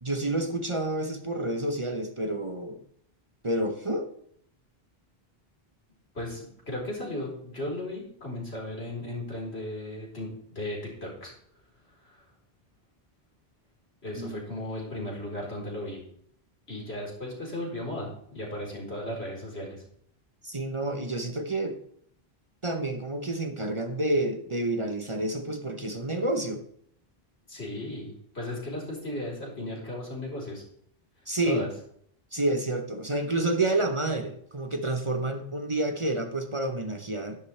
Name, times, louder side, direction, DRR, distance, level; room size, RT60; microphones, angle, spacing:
voice 1, 0.0-2.8 3.4-4.1 14.1-14.4 20.4-21.8 22.6-26.6 31.3-31.6 32.3-37.4, right 2 dB, 30° right, 6 dB, 1.0 m, -29 dB
voice 2, 6.1-11.3 12.0-12.2 14.0-16.0 16.7-19.8 27.5-30.6 31.4-31.7, left 1 dB, 85° left, -3 dB, 4.5 m, -36 dB
12.0 x 11.5 x 3.4 m, 0.65 s
omnidirectional pair, 1.0 m